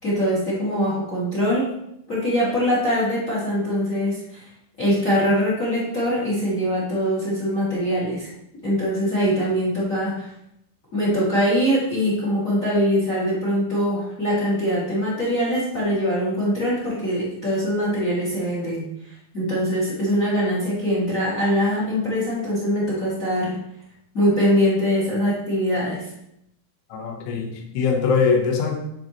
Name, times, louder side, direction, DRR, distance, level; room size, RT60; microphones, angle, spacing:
voice 1, 0.0-1.7 2.1-4.4 4.8-8.3 8.6-10.3 10.9-23.5 24.1-26.1, equal, 30° left, -5 dB, 1.6 m, -23 dB
voice 2, 26.9-28.8, left 5 dB, 85° left, 1 dB, 3.7 m, -22 dB
11.5 x 5.1 x 3.1 m, 0.79 s
omnidirectional pair, 5.4 m